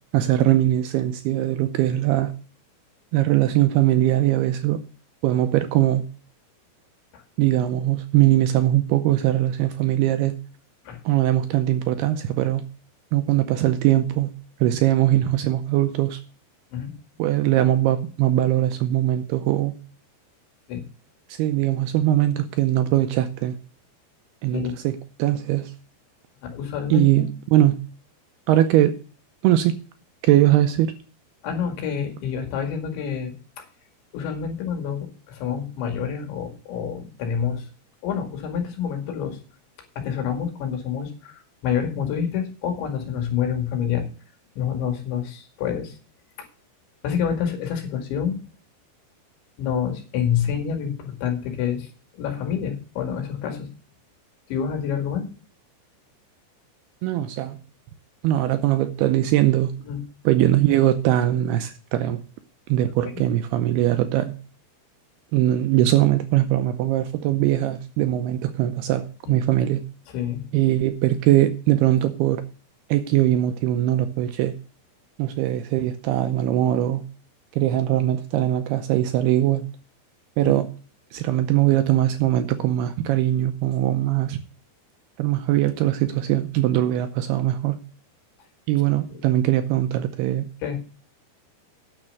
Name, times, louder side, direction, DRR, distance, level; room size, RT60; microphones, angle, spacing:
voice 1, 0.1-2.3 3.1-4.8 5.2-6.0 7.4-10.3 11.1-12.6 13.1-14.3 14.6-16.2 17.2-19.7 21.3-23.6 24.4-25.7 26.9-27.8 28.5-28.9 29.4-29.7 30.2-30.9 57.0-57.6 58.2-59.7 60.3-62.2 62.7-64.3 65.3-69.8 70.5-72.4 72.9-74.5 75.2-77.0 77.5-79.7 80.4-80.7 81.1-84.4 85.2-87.8 88.7-90.5, right 13 dB, 80° right, 9 dB, 2.4 m, -21 dB
voice 2, 26.4-27.3 31.4-33.7 34.1-37.7 38.0-39.4 40.0-44.1 44.6-46.0 47.0-48.3 49.6-51.9 52.1-53.7 54.5-55.3 59.9-60.0 69.3-69.4 70.1-70.4 80.4-80.7 88.9-89.2 90.6-90.8, left 8 dB, 80° left, 4 dB, 4.4 m, -27 dB
9.8 x 7.1 x 6.6 m, 0.36 s
omnidirectional pair, 5.2 m